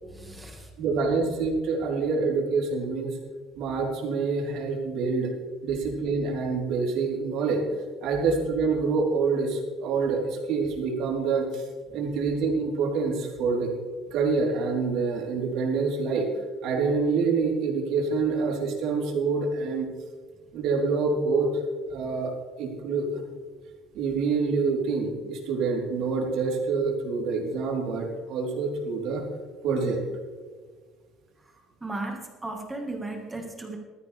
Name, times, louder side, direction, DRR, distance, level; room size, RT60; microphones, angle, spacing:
voice 1, 0.0-0.7 12.0-12.1 31.4-31.5 31.8-33.8, right 2 dB, 10° right, 2 dB, 1.8 m, -36 dB
voice 2, 0.8-3.2 3.6-5.3 5.6-7.6 8.0-11.7 11.9-13.7 14.1-16.3 16.6-19.9 20.5-21.5 21.9-22.3 22.6-23.2 23.9-29.2 29.6-30.0, right 4 dB, 60° right, -1 dB, 3.9 m, -26 dB
19.0 x 14.0 x 3.5 m, 1.5 s
cardioid pair, 170°, 0 cm